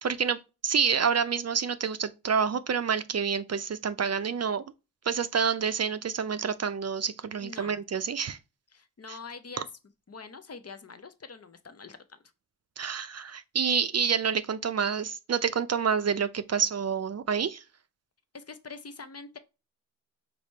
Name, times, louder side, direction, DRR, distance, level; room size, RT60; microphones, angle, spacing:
voice 1, 0.0-4.6 5.1-8.4 12.8-17.6, right 6 dB, 50° right, 0.4 m, -28 dB
voice 2, 7.4-7.8 8.7-9.7 10.1-12.2 18.3-19.4, left 4 dB, 45° left, 0.7 m, -44 dB
4.9 x 2.1 x 4.4 m
wide cardioid pair, 60°, 34 cm